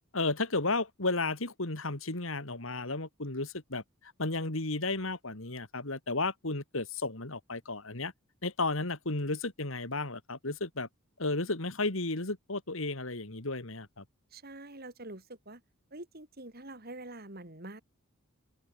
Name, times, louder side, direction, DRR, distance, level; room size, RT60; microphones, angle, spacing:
voice 1, 0.1-8.1 8.4-10.9 11.2-14.0, left 2 dB, 65° left, 2.8 m, -33 dB
voice 2, 14.3-15.6 15.9-17.8, right 2 dB, 45° right, 3.8 m, -45 dB
open air
head